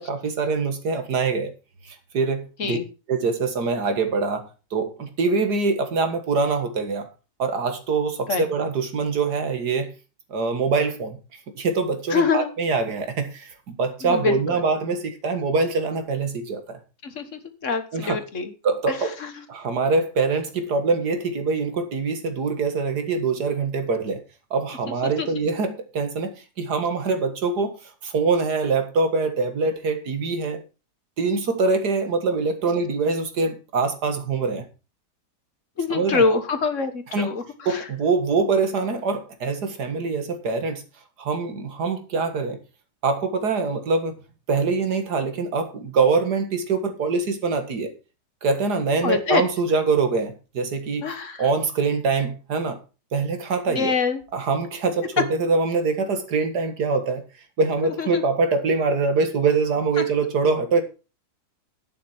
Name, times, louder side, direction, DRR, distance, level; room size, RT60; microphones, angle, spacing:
voice 1, 0.0-1.5 1.8-2.8 3.1-7.1 7.4-9.9 10.3-11.2 11.6-16.8 17.9-18.2 18.6-19.2 19.5-24.2 24.5-27.8 28.0-30.6 31.2-34.7 35.9-36.4 37.1-37.3 37.7-40.8 41.2-42.6 43.0-44.2 44.5-47.9 48.4-51.1 51.4-52.8 53.1-53.9 54.3-57.2 57.6-60.8, right 4 dB, 75° right, 2.3 m, -24 dB
voice 2, 12.1-12.5 14.0-14.6 17.0-18.5 18.9-19.4 25.0-25.3 35.8-37.9 49.0-49.4 51.0-51.5 53.7-54.2 55.0-55.1 57.8-58.2 60.0-60.1, left 5 dB, 50° left, 1.7 m, -25 dB
10.5 x 9.0 x 4.4 m
omnidirectional pair, 1.7 m